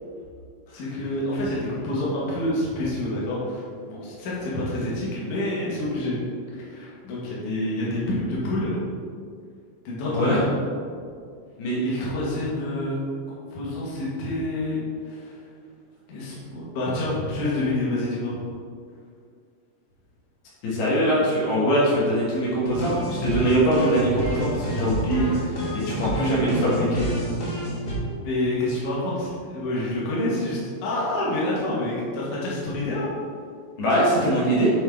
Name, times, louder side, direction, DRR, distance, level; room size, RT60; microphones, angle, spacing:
voice 1, 0.7-6.1 6.5-8.8 9.8-10.5 11.8-13.0 13.3-15.4 16.1-18.4 28.2-33.1, left 1 dB, 60° left, -6 dB, 2.7 m, -28 dB
voice 2, 20.6-25.5 25.9-27.0 33.8-34.7, right 1 dB, 80° left, -8 dB, 3.8 m, -22 dB
sound 1, 22.7-28.0, equal, 40° left, 1.9 m, -29 dB
10.0 x 4.2 x 3.6 m, 2.2 s
omnidirectional pair, 4.6 m